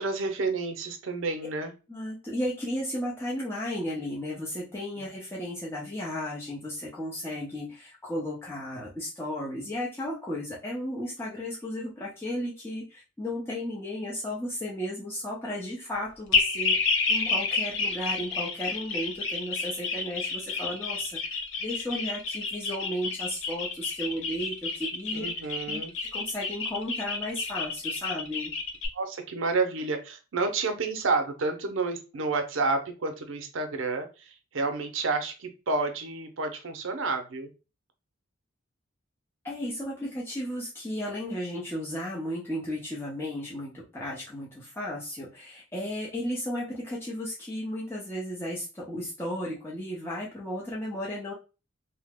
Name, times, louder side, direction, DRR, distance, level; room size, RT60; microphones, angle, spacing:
voice 1, 0.0-1.7 25.1-25.9 28.9-37.5, right 3 dB, 75° right, 6 dB, 0.5 m, -30 dB
voice 2, 1.9-25.3 25.7-25.8 26.1-28.5 39.4-51.3, left 1 dB, 10° left, -5 dB, 0.5 m, -34 dB
sound 1, 16.3-28.9, left 4 dB, 70° left, 0.6 m, -30 dB
2.8 x 2.1 x 3.4 m, 0.31 s
head